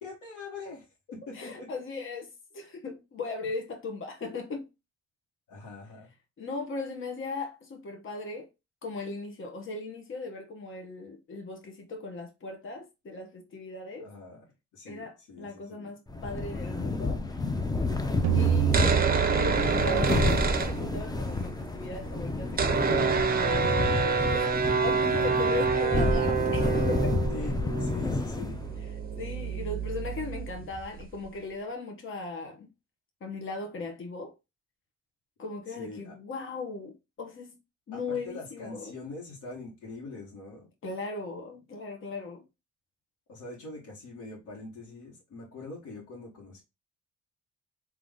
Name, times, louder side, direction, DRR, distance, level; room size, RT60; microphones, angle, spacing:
voice 1, 0.0-1.7 5.5-6.1 14.0-14.5 14.7-16.0 27.3-28.7 35.7-36.2 37.9-40.7 43.3-46.6, left 3 dB, 85° left, 1.7 m, -43 dB
voice 2, 1.3-4.7 6.4-8.5 8.8-14.1 14.8-17.5 18.3-18.8 19.4-27.1 29.2-32.7 33.2-34.3 35.4-37.6 37.9-38.9 40.8-42.4, left 3 dB, 40° left, 1.1 m, -38 dB
sound 1, 16.1-28.8, left 3 dB, 15° left, 0.6 m, -30 dB
sound 2, 18.2-21.2, right 10 dB, 65° right, 0.5 m, -28 dB
sound 3, 18.6-21.3 21.6-21.7 21.9-31.3, right 5 dB, 30° right, 0.8 m, -28 dB
3.7 x 2.9 x 3.7 m
cardioid pair, 90°, 30 cm